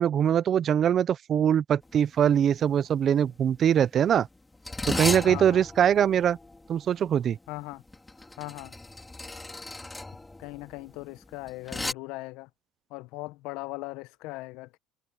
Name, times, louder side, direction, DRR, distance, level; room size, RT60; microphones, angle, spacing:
voice 1, 0.0-4.3 4.9-6.4 6.7-7.4, right 9 dB, 45° right, 0.9 m, -23 dB
sound 1, 1.9-2.1 2.3-2.7 3.4-11.9, left 2 dB, 15° left, 4.1 m, -36 dB
voice 2, 5.2-5.6 7.5-7.8 8.4-8.7 10.4-12.5 12.9-14.8, left 21 dB, 70° left, 1.0 m, -39 dB
supercardioid pair, 80°, 0 cm